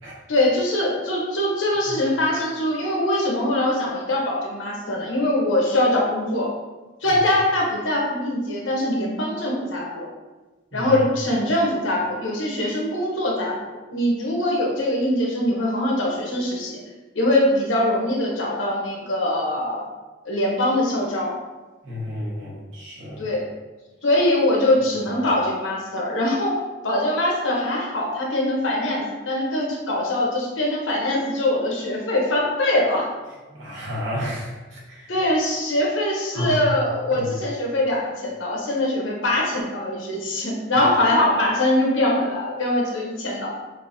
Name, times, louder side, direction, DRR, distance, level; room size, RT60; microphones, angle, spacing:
voice 1, 0.3-6.5 7.0-10.1 10.7-16.8 17.1-19.9 20.2-21.3 23.2-23.4 24.0-33.1 35.1-43.5, left 1 dB, 85° left, -2 dB, 1.0 m, -22 dB
voice 2, 21.8-23.2 33.5-35.1 36.3-36.5 37.1-37.3, left 1 dB, 80° right, -5 dB, 1.3 m, -31 dB
5.8 x 2.7 x 2.6 m, 1.2 s
head